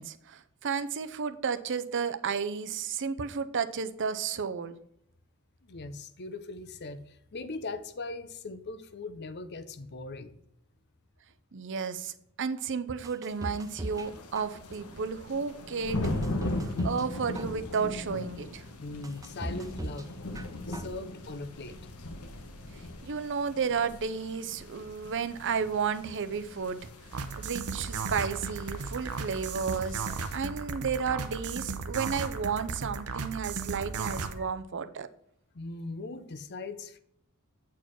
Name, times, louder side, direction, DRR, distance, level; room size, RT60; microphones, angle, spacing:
voice 1, 0.0-4.7 11.5-16.1 16.6-18.6 22.7-26.9 27.4-35.1, right 6 dB, 55° right, 11 dB, 0.6 m, -32 dB
voice 2, 5.6-10.4 18.8-20.1 20.7-21.8 34.4-34.5 35.5-37.0, left 3 dB, 50° left, 12 dB, 0.7 m, -40 dB
sound 1, 13.0-14.1 14.3-15.0 15.5-15.6 16.0-17.1 17.3-18.0 18.5-18.6 19.0-20.1 20.3-21.0 21.3-21.4, right 1 dB, 15° right, 0.4 m, -39 dB
sound 2, 13.3-30.4, left 2 dB, 80° left, 1.2 m, -39 dB
sound 3, 27.1-34.3, right 4 dB, 85° right, 0.8 m, -35 dB
8.4 x 4.6 x 6.1 m, 0.70 s
head